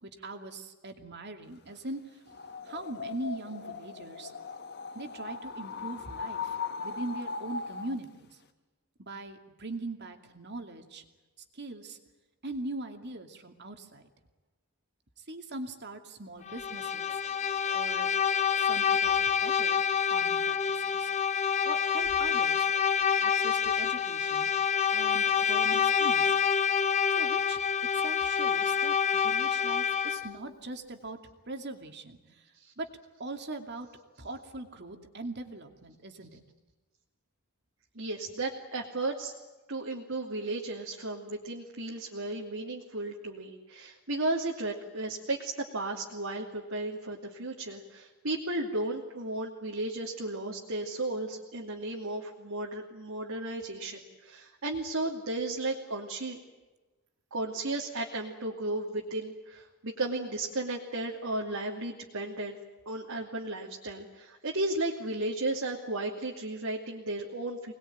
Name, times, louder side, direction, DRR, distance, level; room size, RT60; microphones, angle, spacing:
voice 1, 0.0-2.0 2.3-2.4 2.6-4.3 4.9-8.3 9.0-11.0 11.5-12.0 12.4-14.1 15.3-17.2 17.7-18.1 18.6-19.2 19.4-19.8 20.1-22.7 23.2-24.5 24.9-26.3 27.2-27.6 27.9-31.2 31.5-32.4 32.8-32.9 33.2-33.9 34.2-36.4, right 2 dB, 50° right, 5 dB, 2.6 m, -41 dB
sound 1, 2.3-8.0, left 5 dB, 50° left, 1.4 m, -39 dB
Bowed string instrument, 16.5-30.4, left 7 dB, 30° left, 0.9 m, -27 dB
voice 2, 37.9-39.3 39.7-56.4 57.3-62.6 62.9-67.7, right 2 dB, 65° right, -1 dB, 2.7 m, -34 dB
25.5 x 20.5 x 9.3 m, 1.2 s
head